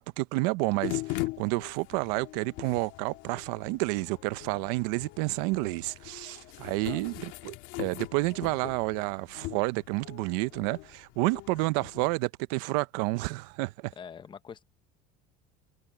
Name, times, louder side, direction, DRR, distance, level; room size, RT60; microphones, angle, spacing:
voice 1, 0.0-13.9, right 23 dB, 80° right, 0.7 m, -30 dB
sound 1, 0.8-12.2, left 20 dB, 70° left, 2.4 m, -40 dB
voice 2, 6.8-7.2 14.0-14.6, left 7 dB, 25° left, 0.8 m, -45 dB
cardioid pair, 145°, 21 cm